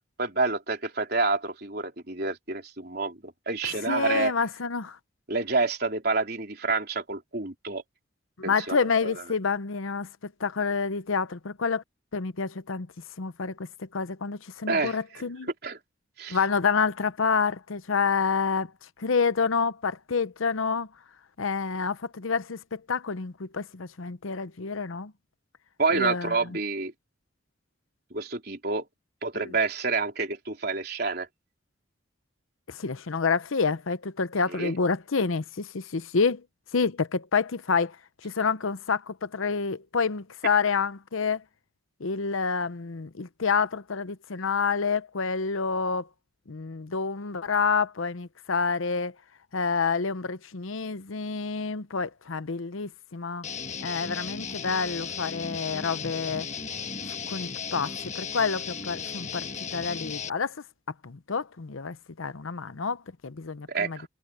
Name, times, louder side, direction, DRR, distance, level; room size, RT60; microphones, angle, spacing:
voice 1, 0.2-4.3 5.3-7.8 8.4-9.1 14.7-15.0 15.6-15.8 16.2-16.4 25.8-26.9 28.1-28.8 29.2-31.3 34.5-34.7 63.7-64.1, right 3 dB, 50° right, 4.0 m, -28 dB
voice 2, 3.6-5.0 8.4-11.8 12.1-12.9 13.2-15.5 16.3-18.7 19.0-20.9 21.4-25.1 25.9-26.6 29.3-29.5 32.7-36.4 36.7-38.0 38.2-41.4 42.0-46.1 46.5-49.1 49.5-53.5 53.8-56.5 57.3-60.6 61.0-64.0, left 5 dB, 85° left, 0.8 m, -28 dB
Guitar, 53.4-60.3, left 6 dB, 35° left, 1.4 m, -35 dB
head